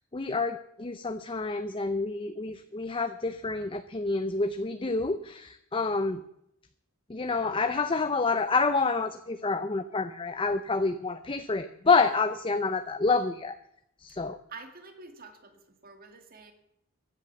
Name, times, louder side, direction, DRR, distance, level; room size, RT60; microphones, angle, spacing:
voice 1, 0.1-6.2 7.1-13.6 14.0-14.4, left 4 dB, 25° left, 9 dB, 0.6 m, -28 dB
voice 2, 14.5-16.5, right 4 dB, 45° right, 6 dB, 2.2 m, -48 dB
15.5 x 11.0 x 7.0 m, 0.77 s
head